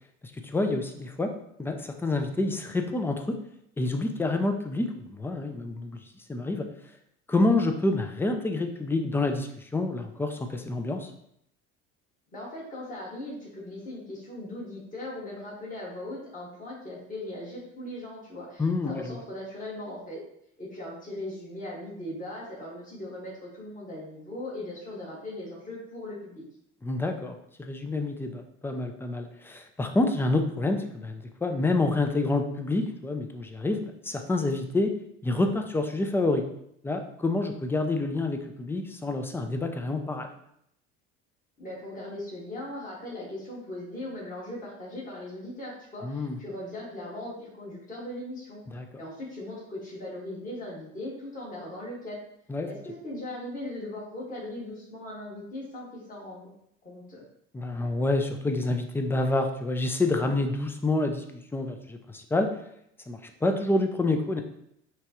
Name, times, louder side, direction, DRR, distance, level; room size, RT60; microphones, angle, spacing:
voice 1, 0.5-1.3 1.6-3.4 3.8-6.0 6.3-6.7 7.3-11.1 18.6-19.2 26.8-34.9 35.2-36.4 36.8-40.3 46.0-46.4 48.7-48.9 52.5-52.7 57.5-61.2 61.5-62.5 63.1-64.4, left 2 dB, 5° left, 6 dB, 0.4 m, -28 dB
voice 2, 12.3-20.2 20.6-26.4 41.6-48.6 49.0-52.2 52.6-56.5 56.8-57.2, left 1 dB, 20° left, -5 dB, 1.7 m, -39 dB
5.7 x 2.4 x 3.0 m, 0.73 s
supercardioid pair, 85°, 36 cm